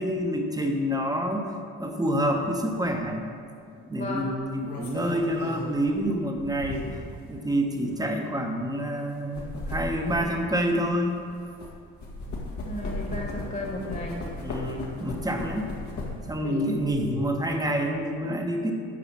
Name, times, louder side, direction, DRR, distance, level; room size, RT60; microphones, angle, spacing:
voice 1, 0.0-1.5 1.8-3.3 3.9-6.9 7.3-11.2 14.4-15.7 16.3-18.7, equal, 10° right, 2 dB, 1.2 m, -27 dB
sound 1, 2.8-3.0 4.3-7.2 7.9-8.0 9.1-11.7 12.0-16.4 16.7-17.6, left 2 dB, 70° left, 2.0 m, -36 dB
voice 2, 3.9-4.3 12.6-14.2 16.4-16.7, left 1 dB, 30° left, -1 dB, 1.8 m, -34 dB
9.6 x 4.8 x 7.5 m, 2.3 s
cardioid pair, 90°, 30 cm